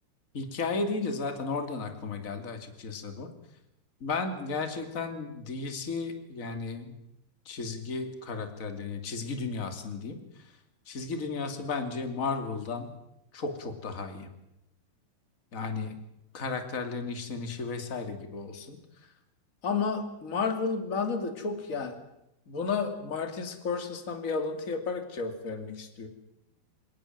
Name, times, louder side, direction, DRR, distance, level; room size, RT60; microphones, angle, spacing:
voice 1, 0.3-3.3 4.0-6.9 7.5-10.2 10.9-12.9 13.3-14.3 15.5-16.0 16.3-18.8 19.6-22.0 22.5-26.1, left 4 dB, 25° left, 7 dB, 2.2 m, -33 dB
28.0 x 17.5 x 7.5 m, 0.84 s
omnidirectional pair, 4.8 m